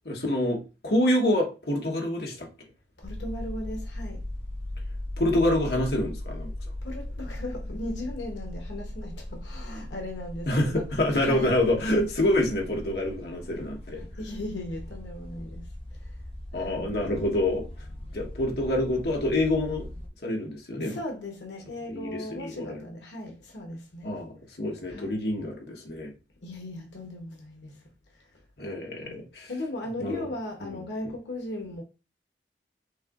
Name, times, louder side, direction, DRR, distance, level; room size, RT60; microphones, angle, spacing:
voice 1, 0.0-2.5 5.2-6.5 10.5-14.1 16.5-17.6 18.1-19.9 20.2-21.0 21.9-22.8 24.0-26.1 28.6-29.5 30.0-30.2 30.7-30.8, left 1 dB, 65° left, 1.1 m, -27 dB
voice 2, 3.0-4.2 6.8-11.5 14.2-16.1 16.5-16.9 20.8-24.2 24.9-25.3 26.4-27.8 29.0-31.8, left 1 dB, 90° left, 1.0 m, -37 dB
sound 1, 3.0-20.1, left 1 dB, 35° left, 0.7 m, -38 dB
6.3 x 2.9 x 2.5 m
head